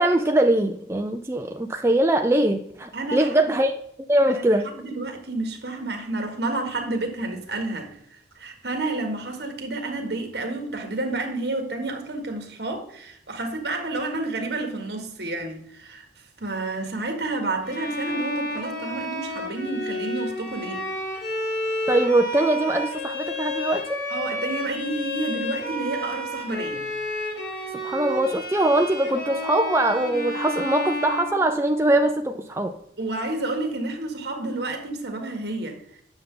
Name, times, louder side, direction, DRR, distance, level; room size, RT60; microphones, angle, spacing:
voice 1, 0.0-3.7 4.1-4.7 21.9-24.0 27.8-32.7, right 1 dB, 15° right, 0.4 m, -22 dB
voice 2, 2.9-3.6 4.3-16.0 16.4-20.9 24.1-26.9 27.5-27.7 33.0-35.8, right 2 dB, 65° right, 1.6 m, -30 dB
Bowed string instrument, 17.6-31.9, left 1 dB, 80° left, 2.3 m, -31 dB
8.9 x 6.6 x 3.8 m
head